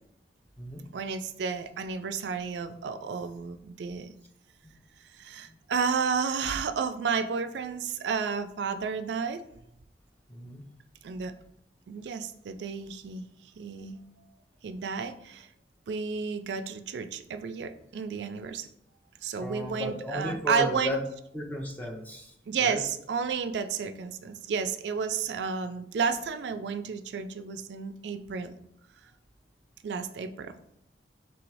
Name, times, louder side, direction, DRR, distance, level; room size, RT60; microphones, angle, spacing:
voice 1, 0.9-4.1 5.2-9.4 11.0-11.3 11.9-13.3 13.6-14.0 14.6-15.5 15.9-18.7 19.2-21.0 22.5-28.5 29.8-30.5, right 5 dB, 80° right, 10 dB, 0.4 m, -32 dB
voice 2, 10.3-10.6 19.4-21.0 21.3-22.3 22.6-22.8, left 1 dB, 10° left, 1 dB, 0.5 m, -34 dB
3.2 x 3.0 x 4.7 m, 0.75 s
head